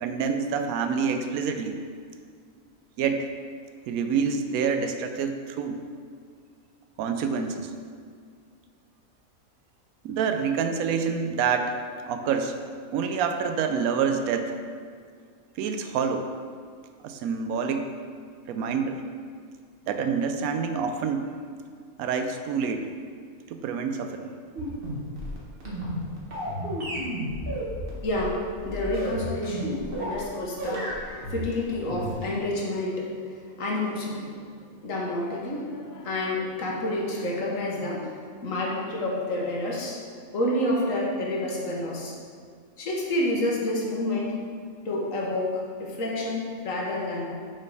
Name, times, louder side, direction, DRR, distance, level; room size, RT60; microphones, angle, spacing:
voice 1, 0.0-1.8 3.0-3.3 3.9-5.8 7.0-7.7 10.0-11.7 12.1-12.5 12.9-14.6 15.6-16.3 17.0-17.9 18.5-19.0 19.9-21.3 22.0-22.9 23.5-24.3, right 6 dB, 80° right, 6 dB, 1.0 m, -27 dB
sound 1, 24.5-30.3 30.6-32.4, equal, 40° right, 1.5 m, -32 dB
voice 2, 28.0-34.4 34.8-38.2 38.4-40.0 40.3-42.2 42.8-44.4 44.8-47.3, left 1 dB, 65° left, -2 dB, 1.4 m, -29 dB
6.3 x 4.3 x 4.7 m, 2.1 s
omnidirectional pair, 1.5 m